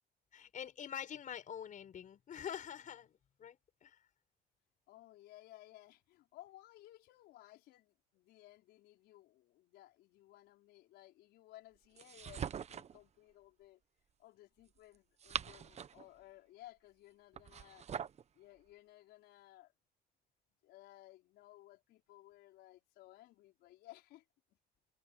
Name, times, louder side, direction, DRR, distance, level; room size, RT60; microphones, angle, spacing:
voice 1, 0.3-4.0, left 9 dB, 50° left, 5.7 m, -46 dB
voice 2, 4.9-13.8 14.2-17.8 18.3-19.7 20.6-24.2, left 16 dB, 85° left, 5.5 m, -59 dB
sound 1, 12.0-13.0 14.9-16.1 17.3-18.2, right 8 dB, 40° right, 1.0 m, -43 dB
cardioid pair, 110°, 17 cm